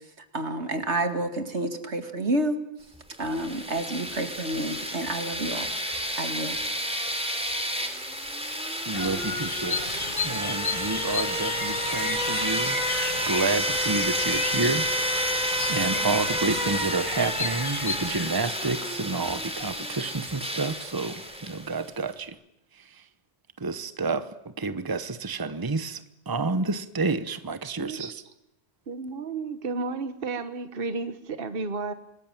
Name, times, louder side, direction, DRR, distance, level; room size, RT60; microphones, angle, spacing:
voice 1, 0.3-2.6 3.2-5.7 6.2-6.6, right 1 dB, 80° right, 2.5 m, -29 dB
sound 1, 3.1-21.8, equal, 5° right, 3.3 m, -30 dB
Bird vocalization bird call bird song, 8.9-18.3, left 5 dB, 45° left, 1.4 m, -34 dB
voice 2, 8.9-12.8 13.3-22.4 23.6-24.3 24.6-28.2, right 3 dB, 20° right, 1.0 m, -30 dB
voice 3, 27.8-28.1 28.9-31.9, right 4 dB, 55° right, 1.4 m, -32 dB
26.0 x 20.0 x 9.1 m
omnidirectional pair, 1.1 m